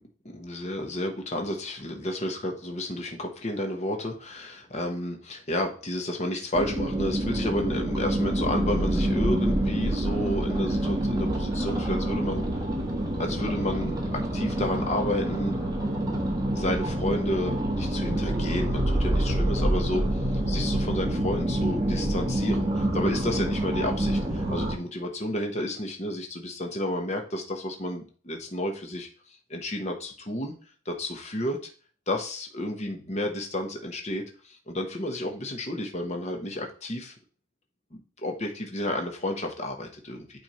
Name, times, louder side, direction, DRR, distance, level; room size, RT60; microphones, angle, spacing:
voice 1, 0.2-12.4 13.2-15.6 16.1-30.5 30.8-31.6 32.1-37.1 37.9-40.4, left 1 dB, 35° left, 3 dB, 1.1 m, -31 dB
sound 1, 6.5-24.8, right 1 dB, 20° right, 1.4 m, -27 dB
9.2 x 3.5 x 4.3 m, 0.40 s
head